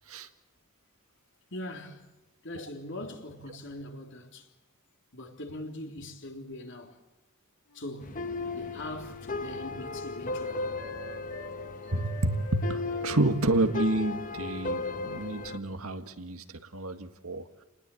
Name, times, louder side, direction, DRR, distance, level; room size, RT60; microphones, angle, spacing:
voice 1, 1.5-2.1 2.4-4.5 5.1-7.0 7.7-8.1 8.5-10.7, left 1 dB, 60° left, 3.6 m, -41 dB
Wind instrument woodwind instrument, 7.7-11.5 11.8-15.4 15.7-16.2, equal, 85° left, 6.6 m, -48 dB
sound 1, 8.0-15.6, left 3 dB, 40° left, 1.1 m, -36 dB
voice 2, 11.9-16.4 16.7-17.6, right 2 dB, 80° right, 1.9 m, -29 dB
29.5 x 20.0 x 8.5 m
head